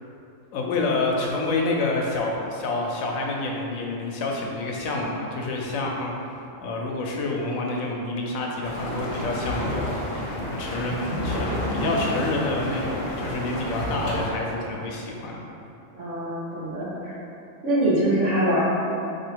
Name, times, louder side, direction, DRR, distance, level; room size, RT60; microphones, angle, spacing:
voice 1, 0.5-15.4, left 2 dB, 75° left, -1 dB, 1.0 m, -28 dB
sound 1, 8.6-14.3, equal, 45° left, 0.9 m, -29 dB
voice 2, 15.9-17.1 17.6-18.7, right 1 dB, 60° right, -9 dB, 1.5 m, -23 dB
4.2 x 2.7 x 4.5 m, 2.8 s
omnidirectional pair, 1.4 m